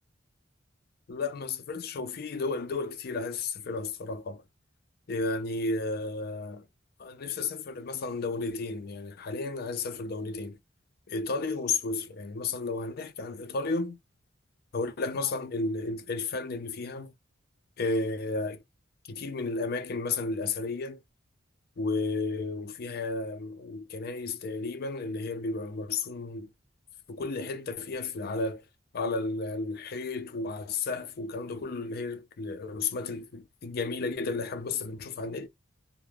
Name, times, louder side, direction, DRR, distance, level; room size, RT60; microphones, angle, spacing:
voice 1, 1.1-4.4 5.1-6.6 7.0-10.6 11.1-14.0 14.7-17.1 17.8-18.6 19.1-21.0 21.8-26.5 27.1-28.6 28.9-35.5, left 3 dB, 50° left, 0.4 m, -33 dB
2.3 x 2.1 x 3.2 m
head